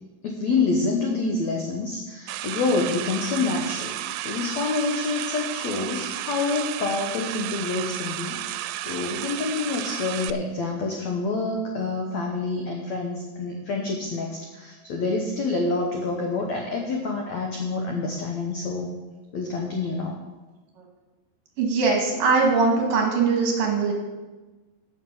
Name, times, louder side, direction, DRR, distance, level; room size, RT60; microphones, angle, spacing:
voice 1, 0.2-18.9 19.3-20.2, left 3 dB, 75° left, 1 dB, 1.6 m, -27 dB
sound 1, 2.3-10.3, right 14 dB, 85° right, 2.7 m, -32 dB
voice 2, 21.6-23.9, right 4 dB, 60° right, 0 dB, 3.4 m, -21 dB
9.2 x 8.8 x 7.2 m, 1.2 s
omnidirectional pair, 4.8 m